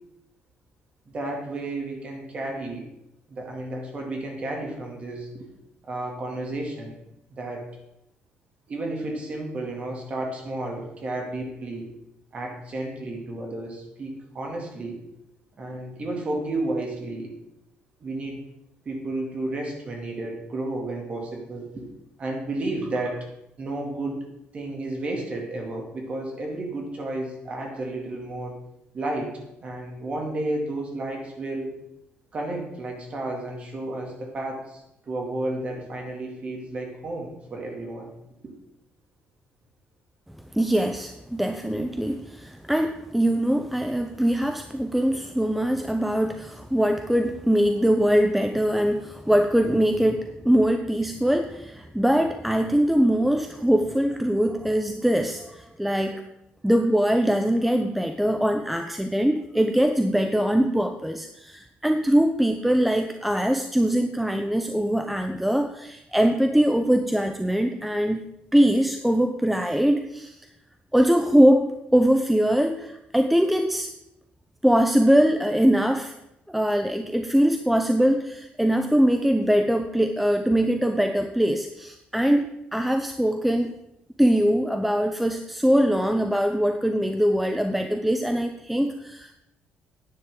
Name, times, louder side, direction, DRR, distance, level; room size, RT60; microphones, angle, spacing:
voice 1, 1.1-2.8 3.3-5.5 5.8-6.9 7.3-7.6 8.7-11.8 12.3-15.0 15.6-17.3 18.0-18.4 18.9-21.9 22.2-23.3 23.6-24.2 24.5-28.5 28.9-29.3 29.6-31.8 32.3-38.1, right 2 dB, 30° right, 0 dB, 2.3 m, -32 dB
voice 2, 40.5-56.2 56.6-68.2 68.5-70.4 70.9-73.9 74.6-76.1 76.5-82.5 82.7-83.7 84.2-89.4, equal, ahead, 6 dB, 0.5 m, -22 dB
10.0 x 9.7 x 3.7 m, 0.84 s
cardioid pair, 160°, 4 cm